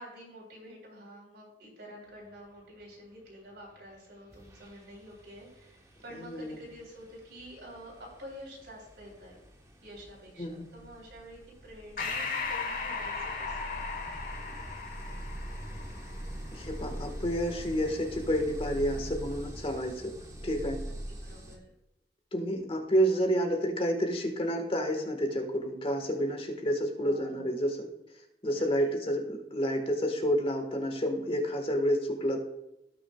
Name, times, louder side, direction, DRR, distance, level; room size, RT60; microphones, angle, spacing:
voice 1, 0.0-9.4 9.8-13.6 20.9-21.7 27.0-27.5 28.5-28.9, equal, 70° right, -3 dB, 3.6 m, -48 dB
sound 1, 3.8-4.0 4.3-21.6, right 1 dB, 20° right, 1.0 m, -44 dB
voice 2, 6.2-6.5 10.4-10.7 16.5-20.1 20.4-20.8 22.3-27.9 28.4-32.4, equal, 30° left, 4 dB, 1.4 m, -29 dB
Breathing, 12.0-16.8, left 4 dB, 50° left, 1.2 m, -37 dB
17.5 x 6.2 x 2.3 m, 0.88 s
head